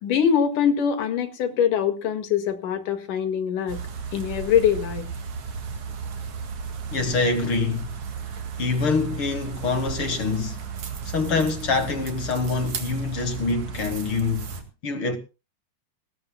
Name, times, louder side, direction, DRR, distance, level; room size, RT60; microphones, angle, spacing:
voice 1, 0.0-3.8 4.1-5.1, left 8 dB, 80° left, 3.4 m, -23 dB
sound 1, 3.7-14.6, right 6 dB, 60° right, 3.2 m, -34 dB
voice 2, 6.9-7.9 8.6-10.6 11.0-14.5 14.8-15.2, left 4 dB, 50° left, 2.0 m, -25 dB
20.0 x 16.5 x 2.2 m
omnidirectional pair, 3.6 m